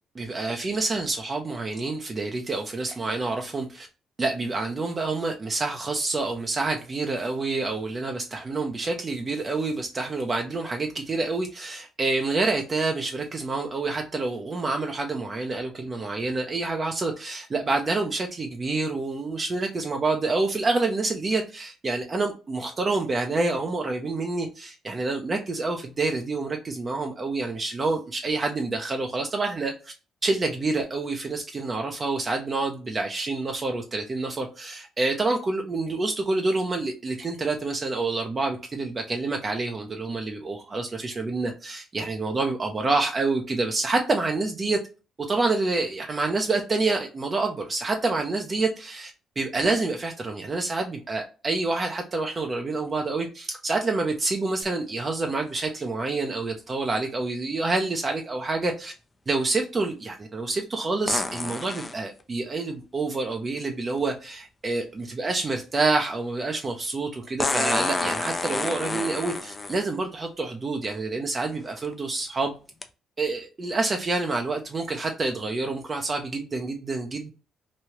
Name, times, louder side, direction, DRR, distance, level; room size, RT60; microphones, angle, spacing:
voice 1, 0.1-3.9 4.2-29.9 30.2-44.8 45.3-49.1 49.4-58.9 59.3-72.5 73.2-77.3, right 3 dB, 35° right, 2 dB, 0.5 m, -27 dB
sound 1, 54.6-54.7 61.1-62.0 64.0-64.1 67.4-69.9 70.8-70.9 71.6-71.9 72.8-72.9, left 3 dB, 25° left, 0.4 m, -28 dB
3.1 x 2.3 x 2.8 m, 0.33 s
cardioid pair, 85°, 0 cm